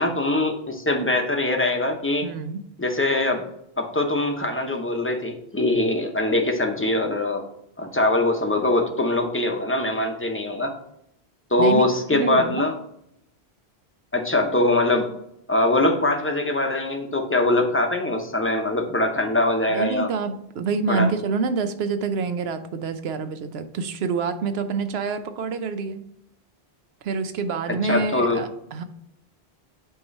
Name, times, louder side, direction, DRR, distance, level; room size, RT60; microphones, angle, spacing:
voice 1, 0.0-2.3 2.8-3.4 3.8-7.4 7.8-10.7 11.5-12.7 14.1-15.1 15.5-20.1 20.9-21.1 27.8-28.4, left 2 dB, 15° left, 3 dB, 0.7 m, -22 dB
voice 2, 2.2-2.6 11.6-11.9 12.1-12.6 19.7-26.0 27.0-28.8, right 4 dB, 75° right, 9 dB, 0.9 m, -27 dB
8.3 x 3.0 x 5.3 m, 0.75 s
omnidirectional pair, 1.1 m